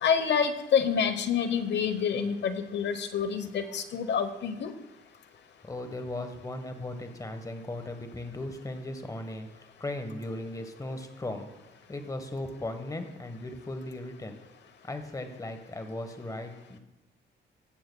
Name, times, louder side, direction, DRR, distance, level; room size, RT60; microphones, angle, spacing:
voice 1, 0.0-4.7, left 7 dB, 60° left, 10 dB, 0.9 m, -27 dB
voice 2, 5.6-9.5 9.8-11.5 11.9-14.4 14.8-16.8, left 1 dB, 15° left, 7 dB, 1.2 m, -37 dB
18.5 x 7.8 x 2.3 m, 1.0 s
cardioid pair, 90°, 20 cm